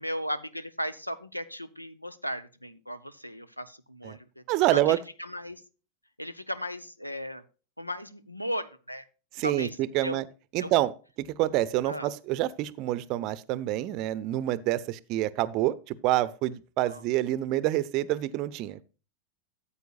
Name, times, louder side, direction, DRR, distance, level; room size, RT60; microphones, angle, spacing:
voice 1, 0.0-4.4 4.7-5.6 6.2-7.4 7.8-9.0 9.4-9.8 10.0-10.2 10.6-10.7 11.9-12.1 16.9-17.0, equal, 90° left, 16 dB, 0.7 m, -36 dB
voice 2, 4.5-5.0 9.3-10.3 10.5-10.9 11.2-18.8, right 15 dB, 40° right, 18 dB, 0.6 m, -27 dB
14.0 x 8.4 x 2.4 m, 0.34 s
figure-of-eight pair, 90°, 0 cm